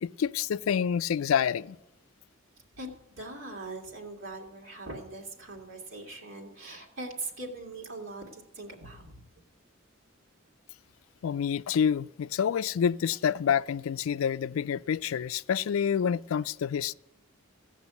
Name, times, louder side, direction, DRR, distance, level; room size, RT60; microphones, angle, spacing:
voice 1, 0.0-1.8 11.2-16.9, left 7 dB, 85° left, 0.4 m, -28 dB
voice 2, 2.8-9.2, right 2 dB, 65° right, 2.2 m, -41 dB
15.5 x 6.1 x 8.3 m
head